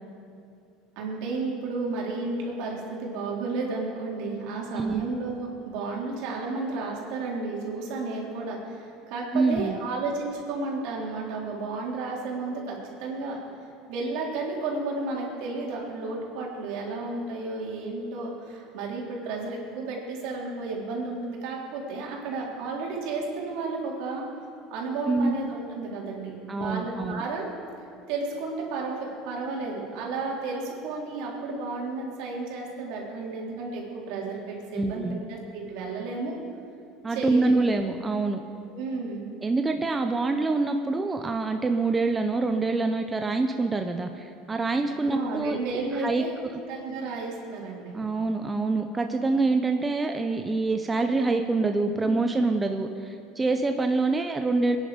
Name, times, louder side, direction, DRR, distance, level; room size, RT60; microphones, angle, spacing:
voice 1, 1.0-13.4 13.9-24.2 24.7-27.5 28.1-36.4 37.1-37.7 38.7-39.3 45.0-46.3 46.7-48.0 52.0-52.2, right 3 dB, 70° right, -2 dB, 3.7 m, -32 dB
voice 2, 9.3-9.8 25.1-25.4 26.5-27.2 34.7-35.2 37.0-38.4 39.4-45.6 46.0-46.2 47.9-54.8, right 3 dB, 15° right, 5 dB, 0.7 m, -25 dB
23.0 x 10.5 x 5.1 m, 2.5 s
cardioid pair, 135°, 0 cm